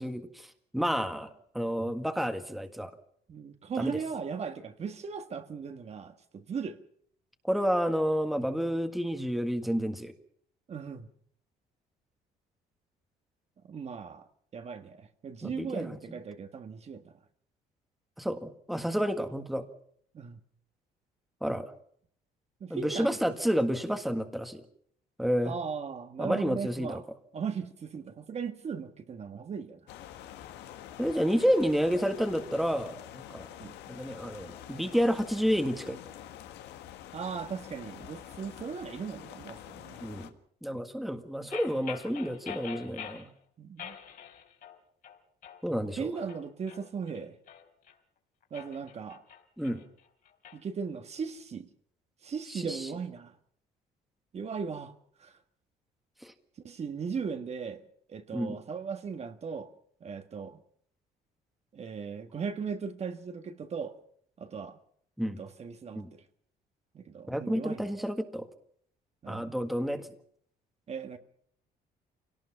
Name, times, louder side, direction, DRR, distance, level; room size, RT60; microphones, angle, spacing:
voice 1, 0.0-2.9 3.8-4.0 7.4-10.1 15.4-16.0 18.2-19.6 21.4-21.7 22.7-24.6 25.2-25.5 26.2-27.0 31.0-33.5 33.9-36.0 40.0-40.3 40.6-43.3 45.6-46.1 49.6-49.8 52.5-52.9 56.2-56.3 58.3-58.6 65.2-65.4 65.9-66.1 67.3-68.5 69.3-70.1, equal, ahead, 1.7 m, -30 dB
voice 2, 3.3-6.8 10.7-11.1 13.7-14.3 14.5-17.1 20.1-20.4 22.6-23.3 25.4-27.0 27.3-29.8 33.6-33.8 37.1-40.0 43.6-44.0 46.0-47.4 48.5-49.2 50.5-51.7 52.2-53.3 54.3-54.9 55.2-55.4 56.6-57.8 58.1-59.7 60.0-60.6 61.7-64.0 64.4-64.8 65.2-66.2 66.9-67.9 69.2-69.5 70.9-71.2, right 6 dB, 40° right, 1.6 m, -37 dB
sound 1, 29.9-40.3, left 11 dB, 85° left, 1.6 m, -47 dB
sound 2, 41.5-43.3 43.8-44.8 45.0-45.6 46.1-47.9 48.4-50.6, left 9 dB, 55° left, 3.7 m, -45 dB
25.0 x 18.0 x 5.8 m
cardioid pair, 110°, 17 cm